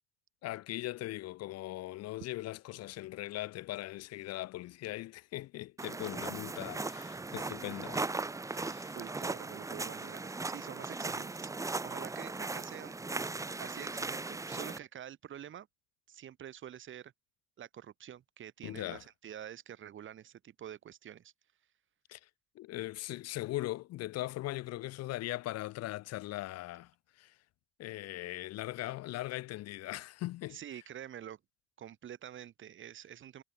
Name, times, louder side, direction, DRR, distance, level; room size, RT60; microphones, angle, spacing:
voice 1, 0.4-8.1 8.5-9.0 18.6-19.0 22.1-22.3 22.5-26.9 27.2-27.3 27.8-30.6, left 16 dB, 55° left, 1.1 m, -40 dB
sound 1, 5.8-14.8, right 3 dB, 10° right, 1.1 m, -38 dB
voice 2, 8.6-15.7 16.1-17.1 17.6-21.3 30.5-31.4 31.8-33.4, right 10 dB, 40° right, 3.4 m, -47 dB
cardioid pair, 135°, 30 cm